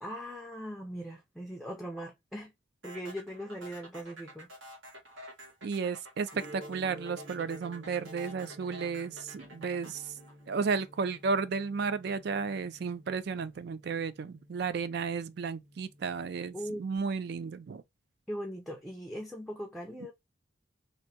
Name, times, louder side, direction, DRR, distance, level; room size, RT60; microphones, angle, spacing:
voice 1, 0.0-2.5 2.8-4.5 16.5-16.8 18.3-20.1, equal, ahead, 0.5 m, -40 dB
sound 1, 2.8-11.2, equal, 85° right, 1.7 m, -49 dB
voice 2, 5.6-10.1 10.5-17.8, right 5 dB, 55° right, 0.3 m, -33 dB
Gong, 6.3-17.0, right 1 dB, 35° right, 0.9 m, -53 dB
3.3 x 2.6 x 2.7 m
head